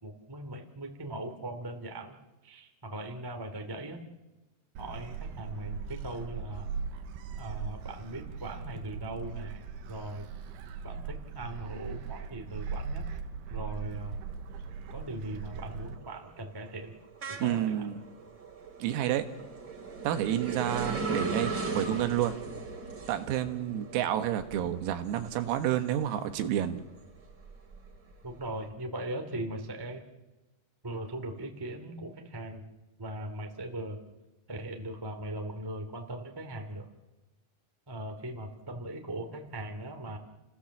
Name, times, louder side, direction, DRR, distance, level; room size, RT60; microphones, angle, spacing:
voice 1, 0.0-2.2 2.4-4.0 4.8-6.7 7.4-9.6 9.9-10.3 10.8-13.0 13.5-14.2 14.9-16.9 17.2-17.9 28.2-30.0 30.8-32.6 33.0-34.0 34.5-36.9 37.9-40.2, right 1 dB, 15° right, 4 dB, 0.7 m, -39 dB
Gull seagull, 4.8-16.0, right 5 dB, 75° right, 3.5 m, -39 dB
sound 1, 14.3-14.7 15.1-26.3 26.8-28.5, right 4 dB, 35° right, 2.3 m, -38 dB
voice 2, 17.4-18.0 18.8-19.3 20.0-22.4 23.1-26.8, right 11 dB, 90° right, 8 dB, 4.2 m, -29 dB
30.0 x 18.0 x 7.3 m, 1.1 s
omnidirectional pair, 6.0 m